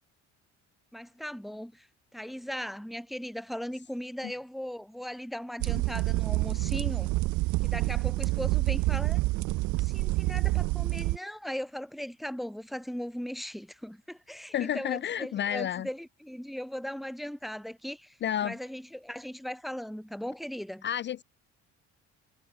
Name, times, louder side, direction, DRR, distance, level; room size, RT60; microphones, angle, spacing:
voice 1, 0.9-1.9 2.1-7.1 7.6-9.2 9.8-18.2 18.4-20.8, equal, ahead, 0.7 m, -38 dB
sound 1, 5.6-11.2, right 21 dB, 80° right, 0.5 m, -27 dB
voice 2, 14.5-15.9 18.2-18.6 20.8-21.2, left 10 dB, 40° left, 0.4 m, -30 dB
cardioid pair, 125°, 29 cm